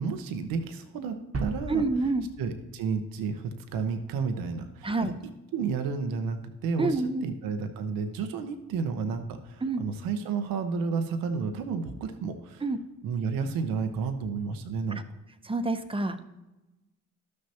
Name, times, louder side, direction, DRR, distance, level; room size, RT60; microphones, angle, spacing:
voice 1, 0.0-1.9 2.4-5.1 5.5-12.6 13.0-15.0, right 5 dB, 80° right, 8 dB, 0.8 m, -31 dB
sound 1, 1.3-3.4, right 3 dB, 45° right, 1.1 m, -37 dB
voice 2, 1.7-2.3 4.8-5.1 6.8-7.2 9.6-9.8 12.6-12.8 15.4-16.2, right 3 dB, 15° right, 8 dB, 0.9 m, -27 dB
12.5 x 6.4 x 2.9 m, 1.0 s
supercardioid pair, 50°, 34 cm